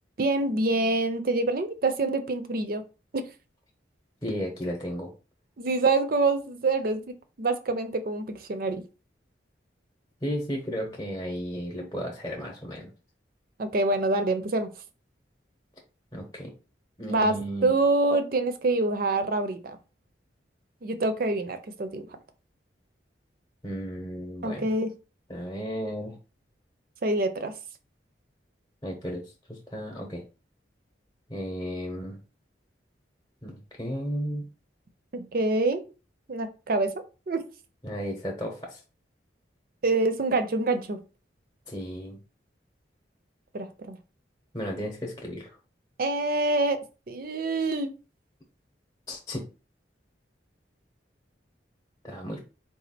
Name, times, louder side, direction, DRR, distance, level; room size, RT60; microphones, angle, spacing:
voice 1, 0.2-2.8 3.1-3.2 5.6-7.0 7.4-8.8 13.6-14.7 17.1-17.3 17.6-19.8 20.8-22.1 24.4-24.9 27.0-27.5 35.1-35.8 36.3-37.4 39.8-41.0 43.5-44.0 46.0-46.8 47.1-47.9, right 2 dB, 50° right, 9 dB, 0.5 m, -26 dB
voice 2, 4.2-5.1 10.2-12.9 16.1-16.5 17.0-17.7 23.6-24.7 25.3-26.1 28.8-29.2 29.5-30.2 31.3-32.2 33.4-34.4 37.8-38.8 41.7-42.2 44.5-45.5 49.1-49.4 52.0-52.4, equal, 20° left, 0 dB, 0.8 m, -34 dB
4.0 x 2.4 x 4.2 m, 0.32 s
head